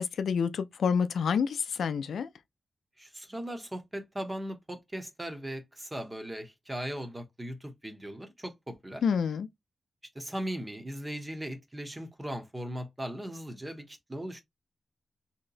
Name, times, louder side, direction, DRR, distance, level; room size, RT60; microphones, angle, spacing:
voice 1, 0.0-2.3 9.0-9.5, left 6 dB, 90° left, 0.3 m, -28 dB
voice 2, 3.0-9.0 10.1-14.4, right 1 dB, 15° right, 0.7 m, -38 dB
2.8 x 2.1 x 3.9 m
wide cardioid pair, 125°, 0 cm